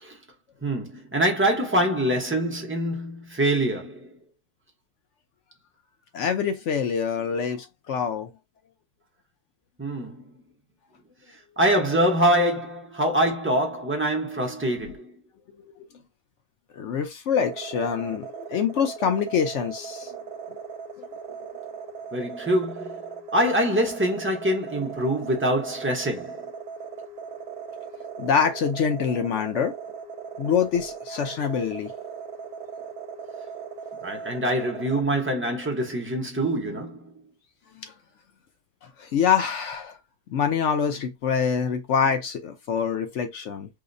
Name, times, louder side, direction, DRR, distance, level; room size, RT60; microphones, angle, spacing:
voice 1, 0.6-4.2 9.8-10.3 11.6-15.1 22.1-23.0 23.3-26.4 34.0-37.1, right 1 dB, 15° right, 0.4 m, -24 dB
voice 2, 6.1-8.3 14.9-15.0 16.8-20.1 21.3-21.4 28.2-29.7 30.4-31.9 39.0-40.0 40.3-43.7, left 7 dB, 65° left, 0.8 m, -25 dB
sound 1, 17.4-35.0, right 6 dB, 75° right, 1.1 m, -38 dB
4.8 x 2.0 x 2.5 m
omnidirectional pair, 1.6 m